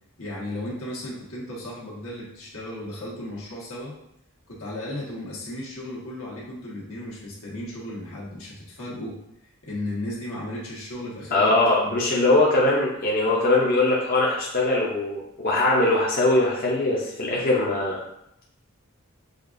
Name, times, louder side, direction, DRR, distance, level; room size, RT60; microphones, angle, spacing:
voice 1, 0.2-4.0 4.5-9.2 9.6-11.5 11.8-12.2, left 1 dB, 80° left, -5 dB, 1.3 m, -35 dB
voice 2, 11.3-18.0, left 2 dB, 45° left, -4 dB, 0.6 m, -21 dB
6.4 x 2.4 x 2.5 m, 0.77 s
head